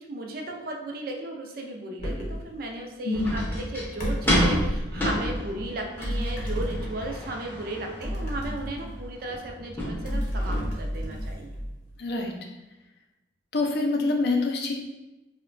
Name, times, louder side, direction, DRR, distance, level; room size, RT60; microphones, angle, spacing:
voice 1, 0.1-11.5, right 2 dB, 55° right, 2 dB, 0.4 m, -35 dB
sound 1, 2.0-2.5 4.0-4.9 6.0-7.3 8.0-9.4 10.0-12.0, equal, 40° left, 0.8 m, -31 dB
voice 2, 3.0-3.4 12.0-12.3 13.5-14.7, left 3 dB, 60° left, 1 dB, 0.4 m, -25 dB
sound 2, 3.1-10.6, equal, 10° left, 0.5 m, -30 dB
2.8 x 2.1 x 2.5 m, 1.0 s
head